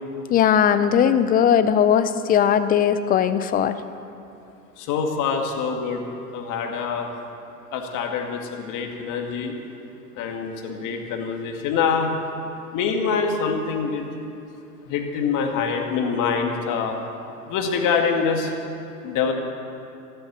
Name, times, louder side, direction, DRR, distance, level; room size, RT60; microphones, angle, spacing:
voice 1, 0.3-3.7, left 8 dB, 20° left, 12 dB, 0.5 m, -18 dB
voice 2, 4.8-6.0 6.3-7.1 7.7-9.5 10.1-12.1 12.7-14.1 14.9-17.0 17.5-18.5 19.0-19.3, left 5 dB, 40° left, 3 dB, 2.3 m, -25 dB
14.0 x 11.5 x 7.0 m, 2.6 s
hypercardioid pair, 95°, 47 cm